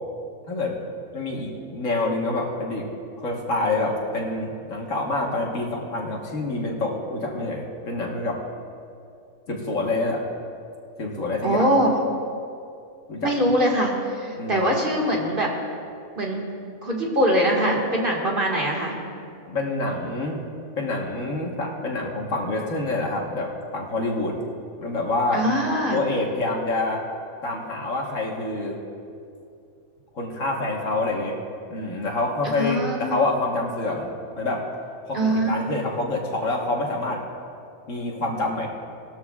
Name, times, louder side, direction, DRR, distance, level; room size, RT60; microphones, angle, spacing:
voice 1, 1.1-2.9 3.2-8.4 9.5-10.2 11.0-11.7 13.1-13.3 14.4-14.7 19.5-20.4 20.8-24.4 24.8-25.5 25.9-27.0 27.4-28.8 30.1-31.4 31.7-34.1 34.4-34.6 35.1-37.2 37.9-38.7, left 2 dB, 60° left, -1 dB, 1.7 m, -27 dB
voice 2, 11.4-11.9 13.2-15.5 16.2-16.4 16.8-19.0 25.3-26.0 32.6-33.2 35.1-35.6, equal, 35° right, -2 dB, 1.9 m, -22 dB
19.5 x 13.5 x 2.4 m, 2.5 s
omnidirectional pair, 1.5 m